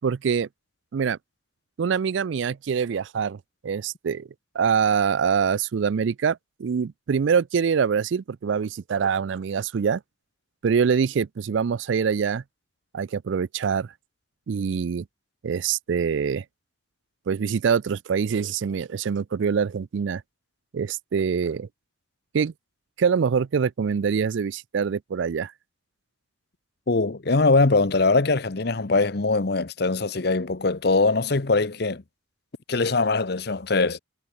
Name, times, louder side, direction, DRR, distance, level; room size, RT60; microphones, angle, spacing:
voice 1, 0.0-0.5 0.9-1.2 1.8-4.3 4.5-10.0 10.6-12.4 12.9-13.9 14.5-15.1 15.4-16.4 17.3-20.2 20.7-21.7 22.3-22.5 23.0-25.5, right 6 dB, 70° right, 0.4 m, -24 dB
voice 2, 26.9-32.0 32.7-34.0, left 3 dB, 55° left, 0.9 m, -22 dB
head